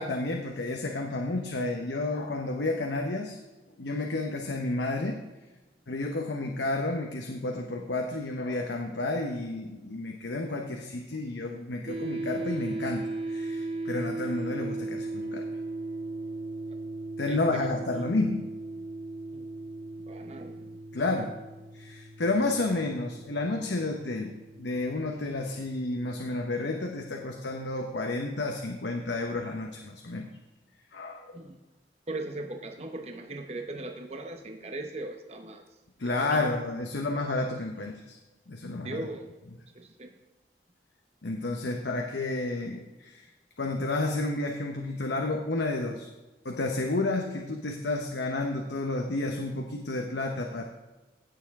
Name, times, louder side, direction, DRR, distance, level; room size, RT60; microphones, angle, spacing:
voice 1, 0.0-3.4 3.8-5.2 5.9-15.5 17.2-18.5 20.9-21.3 21.7-30.3 30.9-31.4 36.0-38.2 38.5-39.1 41.2-43.3 43.6-46.1 46.4-50.6, left 2 dB, 90° left, 2 dB, 0.9 m, -31 dB
sound 1, 11.9-27.1, right 2 dB, 55° right, 3.7 m, -37 dB
voice 2, 17.3-17.6 19.3-19.5 20.1-20.8 31.3-31.6 32.1-35.6 36.0-36.5 38.8-39.3 39.7-40.1, right 2 dB, 35° right, 4 dB, 0.8 m, -39 dB
16.5 x 6.8 x 3.6 m, 1.1 s
head